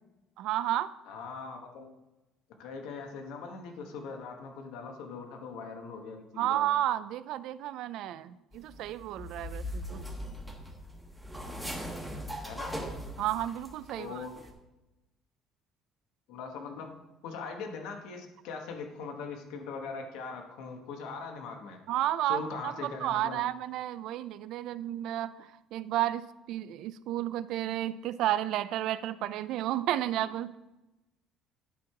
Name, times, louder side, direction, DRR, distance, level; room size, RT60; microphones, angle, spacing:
voice 1, 0.4-0.9 6.4-10.0 13.2-14.2 21.9-30.6, right 13 dB, 65° right, 15 dB, 0.4 m, -32 dB
voice 2, 1.1-1.9 2.6-6.6 12.4-12.8 14.0-14.3 16.3-16.9 17.2-21.8 22.3-23.4, left 4 dB, 85° left, 4 dB, 1.3 m, -41 dB
sound 1, 8.5-13.9 14.2-14.5, equal, ahead, 1.2 m, -40 dB
11.0 x 4.6 x 4.8 m, 1.0 s
cardioid pair, 155°, 0 cm